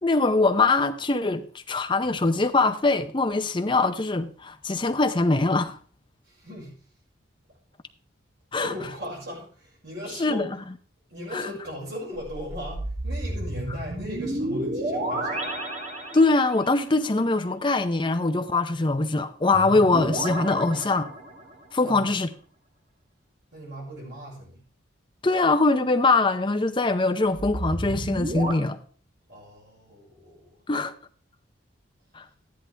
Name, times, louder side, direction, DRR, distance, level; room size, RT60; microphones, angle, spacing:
voice 1, 0.0-5.8 8.5-8.7 10.2-10.5 11.3-11.4 16.1-21.1 21.7-22.3 25.2-28.8 30.7-30.9 32.1-32.2, left 3 dB, 25° left, 0.7 m, -22 dB
voice 2, 6.3-6.7 8.6-10.5 11.1-15.6 21.8-22.2 23.5-24.6 29.3-30.5, equal, 55° right, 5.8 m, -38 dB
sound 1, 12.1-16.7 19.5-21.6 27.2-28.5, right 1 dB, 40° right, 1.6 m, -31 dB
13.0 x 10.5 x 3.4 m
head